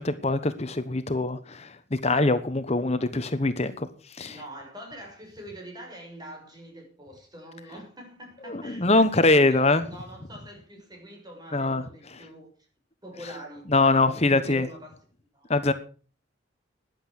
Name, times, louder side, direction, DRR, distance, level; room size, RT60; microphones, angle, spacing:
voice 1, 0.0-3.9 4.2-4.4 8.5-9.8 11.5-11.8 13.7-14.7 15.5-15.7, left 2 dB, 35° left, 1.1 m, -23 dB
voice 2, 4.2-12.5 13.0-15.0 15.3-15.5, equal, 20° right, 6.4 m, -44 dB
14.5 x 10.5 x 6.5 m
head